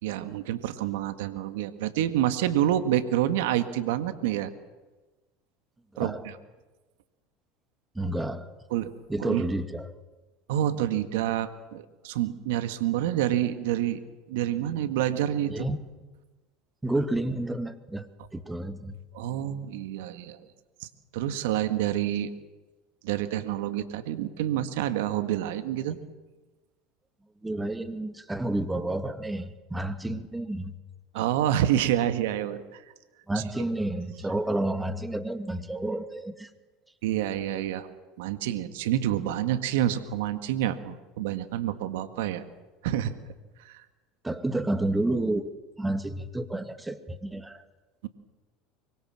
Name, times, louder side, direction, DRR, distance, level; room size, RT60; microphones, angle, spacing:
voice 1, 0.0-4.5 6.0-6.4 8.7-8.9 9.2-9.4 10.5-14.0 14.3-15.7 19.1-20.5 20.8-22.3 23.0-26.0 31.1-32.8 33.4-33.5 37.0-37.9 38.2-42.4 42.8-43.1 43.6-43.9 48.0-48.1, right 12 dB, 75° right, 10 dB, 1.7 m, -28 dB
voice 2, 7.9-8.5 9.1-10.0 15.5-15.8 16.8-19.0 27.4-30.7 31.2-31.3 33.3-36.5 44.2-45.5 45.8-47.7, right 1 dB, 10° right, 9 dB, 2.4 m, -30 dB
24.5 x 23.5 x 7.6 m, 1.2 s
hypercardioid pair, 85°, 0 cm